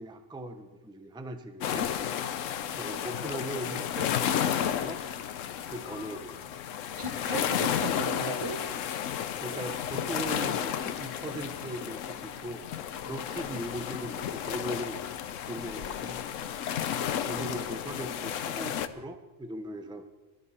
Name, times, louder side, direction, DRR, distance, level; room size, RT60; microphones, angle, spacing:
voice 1, 0.0-1.9 2.8-5.0 5.7-6.6 9.4-12.7 13.1-15.0 15.5-16.2 16.5-16.6 17.2-20.1, right 1 dB, 5° right, 7 dB, 0.7 m, -39 dB
sound 1, 1.6-18.9, left 9 dB, 90° left, 1.1 m, -32 dB
voice 2, 7.0-8.6, right 1 dB, 25° right, 6 dB, 1.4 m, -36 dB
19.5 x 12.5 x 4.3 m, 1.1 s
omnidirectional pair, 1.3 m